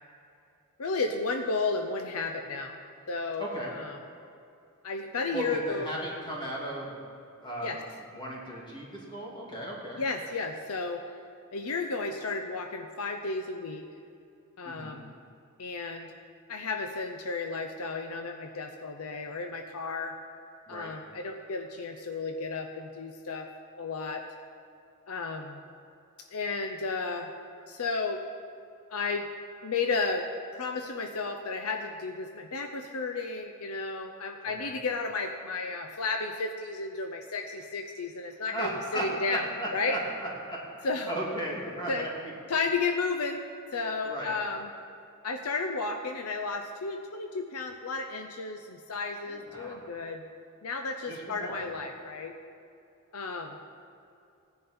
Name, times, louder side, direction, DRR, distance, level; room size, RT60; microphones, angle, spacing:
voice 1, 0.8-2.8 3.1-4.0 4.8-5.9 7.6-7.8 10.0-11.0 11.5-13.8 14.6-15.1 15.6-16.1 16.5-20.1 20.7-23.5 23.8-24.2 25.1-25.6 26.3-27.3 27.7-28.2 28.9-29.3 29.6-30.3 30.5-39.4 39.7-40.0 40.8-41.1 41.9-42.1 42.5-43.4 43.7-44.7 45.2-50.2 50.6-52.3 53.1-53.6, left 3 dB, 75° left, 5 dB, 0.7 m, -33 dB
voice 2, 3.4-3.7 5.3-6.9 7.4-7.8 8.1-10.0 14.6-15.0 20.7-20.9 34.6-34.7 38.5-42.3 44.0-44.3 49.2-49.8 51.1-51.7, right 1 dB, 20° left, -4 dB, 2.6 m, -36 dB
16.0 x 10.0 x 4.3 m, 2.6 s
head